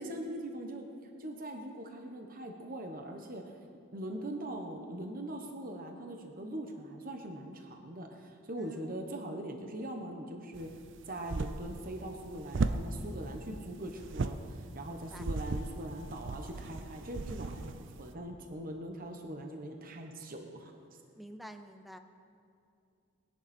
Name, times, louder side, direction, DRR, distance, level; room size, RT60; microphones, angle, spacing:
voice 1, 0.0-3.4 3.9-10.7 11.1-17.7 18.0-20.7, right 1 dB, 45° right, 4 dB, 1.1 m, -41 dB
sound 1, 10.5-18.1, right 3 dB, 60° right, 0.5 m, -37 dB
voice 2, 14.9-15.3 21.2-22.0, equal, ahead, 7 dB, 0.6 m, -49 dB
20.5 x 11.0 x 4.3 m, 2.5 s
head